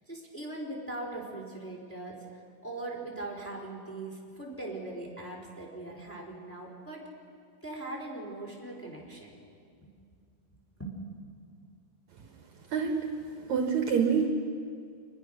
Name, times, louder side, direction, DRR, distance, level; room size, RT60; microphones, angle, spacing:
voice 1, 0.1-2.2 2.6-7.0 7.6-9.3 10.8-10.9, right 2 dB, 5° left, -2 dB, 3.6 m, -40 dB
voice 2, 12.7-13.1 13.5-14.3, right 6 dB, 65° right, 3 dB, 2.3 m, -26 dB
25.5 x 21.0 x 6.4 m, 2.3 s
omnidirectional pair, 3.9 m